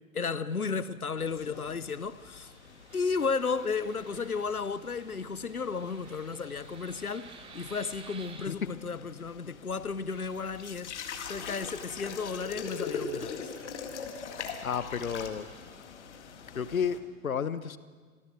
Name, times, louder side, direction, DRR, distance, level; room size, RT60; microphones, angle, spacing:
voice 1, 0.1-2.5 2.9-13.5, left 5 dB, 85° left, 0.8 m, -33 dB
Fixed-wing aircraft airplane, 0.8-8.5, right 5 dB, 10° right, 1.3 m, -54 dB
sound 1, 1.2-17.0, left 6 dB, 55° left, 2.2 m, -43 dB
sound 2, 2.9-4.6 5.6-8.3 10.1-12.1 13.5-13.7 15.2-15.8 16.5-16.6, right 2 dB, 70° right, 5.6 m, -60 dB
voice 2, 14.6-15.5 16.5-17.8, left 7 dB, 70° left, 1.2 m, -32 dB
25.5 x 17.5 x 6.1 m
figure-of-eight pair, 105°, 43 cm